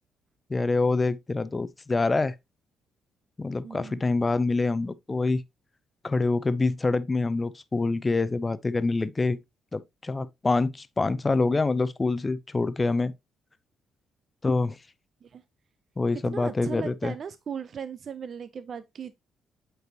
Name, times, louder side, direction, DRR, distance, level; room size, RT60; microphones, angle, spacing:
voice 1, 0.5-2.3 3.4-5.4 6.0-9.4 9.7-13.1 14.4-14.8 16.0-17.1, left 3 dB, 25° left, 0.5 m, -26 dB
voice 2, 3.6-4.0 15.2-15.4 16.2-19.2, right 7 dB, 50° right, 0.5 m, -37 dB
7.9 x 4.7 x 2.8 m
cardioid pair, 90°, 0 cm